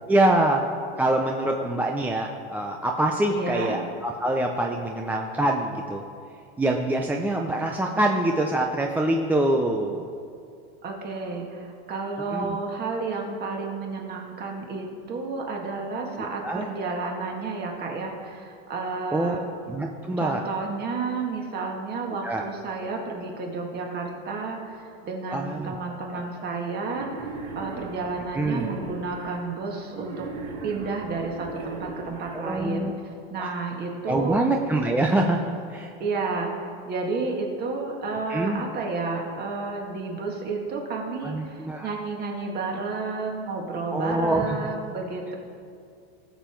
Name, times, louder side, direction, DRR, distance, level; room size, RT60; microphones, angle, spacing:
voice 1, 0.1-0.6 1.0-6.0 6.6-10.0 12.3-12.6 16.4-16.7 19.1-20.4 22.2-22.4 25.3-25.7 26.1-26.3 28.3-28.7 32.3-32.9 33.4-33.5 34.1-35.9 38.3-38.6 41.2-41.9 43.9-44.6, right 1 dB, 5° right, 1 dB, 0.5 m, -25 dB
voice 2, 3.3-3.8 10.8-19.5 20.2-27.1 27.6-30.3 30.6-32.9 33.3-34.4 36.0-45.3, right 3 dB, 30° right, 1 dB, 1.9 m, -31 dB
Wild animals, 26.9-29.4 29.9-32.4, right 3 dB, 65° right, 3.0 m, -38 dB
18.5 x 7.3 x 4.5 m, 2.4 s
supercardioid pair, 145°, 30 cm